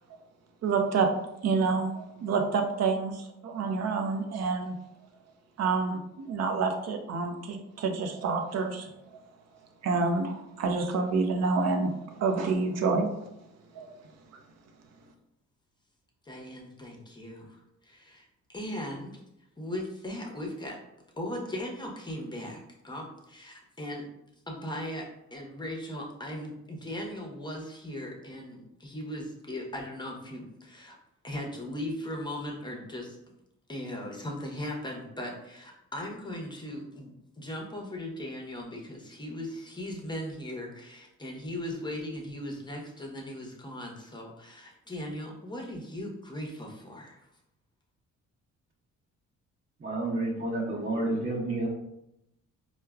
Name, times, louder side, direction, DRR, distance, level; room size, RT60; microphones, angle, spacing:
voice 1, 0.6-1.1 1.4-4.7 5.6-6.0 6.3-8.9 9.8-11.9 12.2-13.1 13.7-13.9, right 4 dB, 60° right, 5 dB, 0.6 m, -28 dB
voice 2, 16.2-19.2 19.6-20.8 21.2-24.1 24.5-31.0 31.2-33.2 33.7-37.1 37.4-47.3, left 1 dB, 15° left, 0 dB, 0.8 m, -38 dB
voice 3, 49.8-51.7, right 2 dB, 35° right, -9 dB, 1.1 m, -30 dB
4.5 x 2.2 x 2.3 m, 0.84 s
cardioid pair, 90°, 30 cm